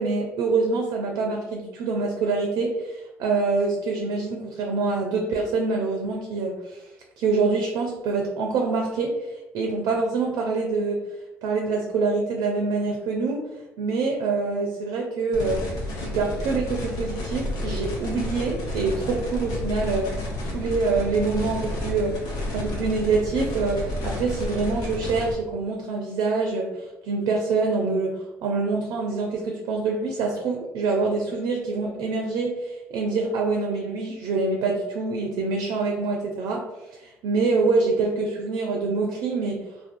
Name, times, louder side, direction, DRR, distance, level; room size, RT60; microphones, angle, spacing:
voice 1, 0.0-6.9 7.2-9.3 9.5-11.0 11.4-13.5 13.8-15.6 16.0-20.1 20.4-22.2 22.5-36.7 37.0-39.6, right 4 dB, 70° right, 1 dB, 0.4 m, -25 dB
sound 1, 15.3-25.3, left 1 dB, 70° left, 0.7 m, -31 dB
2.4 x 2.4 x 2.4 m, 1.0 s
hypercardioid pair, 55°, 7 cm